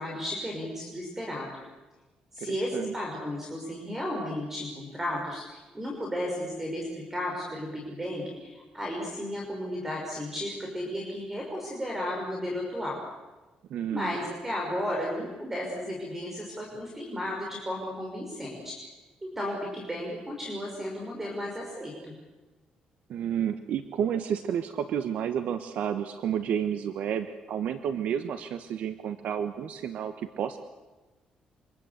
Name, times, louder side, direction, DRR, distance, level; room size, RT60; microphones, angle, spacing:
voice 1, 0.0-1.5 2.3-13.0 13.9-18.9 19.2-22.2, left 1 dB, 15° right, 0 dB, 5.8 m, -34 dB
voice 2, 2.4-2.9 13.7-14.1 23.1-30.6, right 8 dB, 70° right, 9 dB, 1.3 m, -31 dB
28.0 x 25.5 x 8.3 m, 1.2 s
cardioid pair, 155°, 3 cm